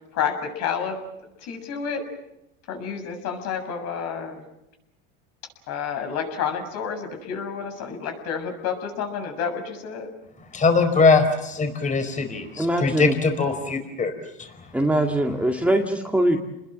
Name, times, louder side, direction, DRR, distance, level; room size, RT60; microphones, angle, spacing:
voice 1, 0.1-1.0 1.4-2.1 2.7-4.4 5.7-10.1, left 7 dB, 60° left, 5 dB, 7.2 m, -29 dB
voice 2, 10.5-14.1 14.4-14.5, left 4 dB, 25° left, 7 dB, 4.9 m, -21 dB
voice 3, 12.6-13.2 14.7-16.4, right 1 dB, 5° right, 2 dB, 2.2 m, -22 dB
30.0 x 21.0 x 7.6 m, 0.89 s
supercardioid pair, 125°, 30 cm